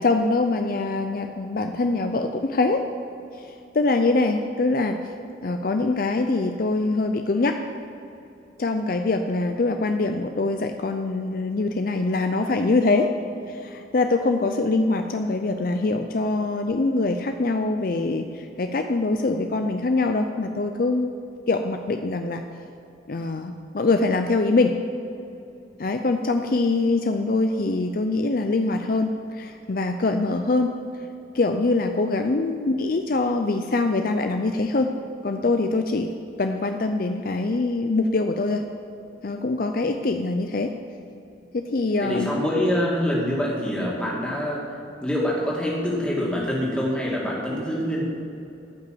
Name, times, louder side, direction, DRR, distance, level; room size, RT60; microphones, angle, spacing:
voice 1, 0.0-2.9 3.3-5.1 5.4-7.6 8.6-13.2 13.5-21.1 21.5-22.4 23.1-24.8 25.8-30.7 31.3-34.9 35.2-36.1 36.4-38.6 39.2-40.7 41.5-42.3, left 3 dB, 50° left, 6 dB, 0.5 m, -23 dB
voice 2, 42.0-44.6 45.0-48.0, equal, 5° left, -5 dB, 2.4 m, -25 dB
14.0 x 5.9 x 7.7 m, 2.8 s
head